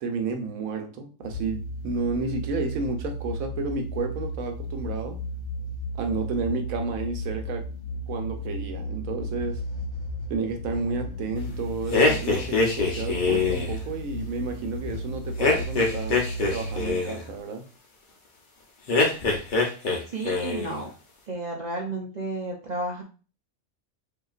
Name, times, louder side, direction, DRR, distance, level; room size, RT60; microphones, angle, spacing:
voice 1, 0.0-5.2 6.0-7.7 8.1-9.6 10.3-17.7, right 4 dB, 70° right, 1.1 m, -31 dB
sound 1, 1.2-16.9, left 1 dB, 70° left, 1.5 m, -34 dB
sound 2, 11.9-13.8 15.4-17.2 18.9-20.0 20.2-20.8, left 3 dB, 40° left, 0.9 m, -23 dB
voice 2, 20.1-20.9 21.3-23.0, right 2 dB, 50° right, 0.5 m, -32 dB
5.2 x 2.9 x 2.4 m
omnidirectional pair, 1.5 m